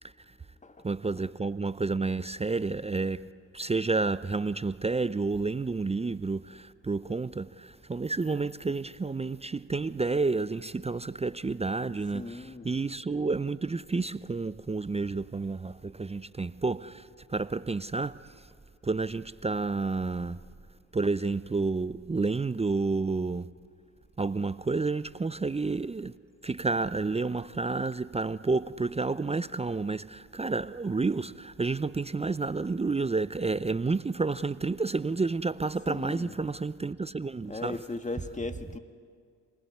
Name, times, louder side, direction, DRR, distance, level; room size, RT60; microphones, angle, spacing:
voice 1, 0.8-3.3 3.5-18.5 18.8-20.4 20.9-23.5 24.2-26.2 26.4-37.8, right 3 dB, 15° right, 0.6 m, -30 dB
voice 2, 12.1-12.7 35.9-36.4 37.5-38.8, left 2 dB, 15° left, 2.0 m, -37 dB
28.0 x 20.0 x 9.6 m
hypercardioid pair, 60°, 42 cm